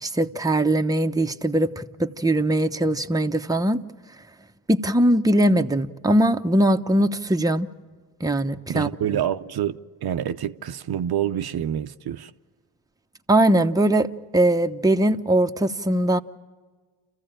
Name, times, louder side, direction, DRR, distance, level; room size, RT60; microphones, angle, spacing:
voice 1, 0.0-3.8 4.7-7.7 8.2-8.9 13.3-16.2, right 1 dB, 10° right, 1.0 m, -21 dB
voice 2, 8.7-12.3, right 10 dB, 60° right, 0.8 m, -27 dB
28.0 x 15.0 x 8.9 m
cardioid pair, 70°, 43 cm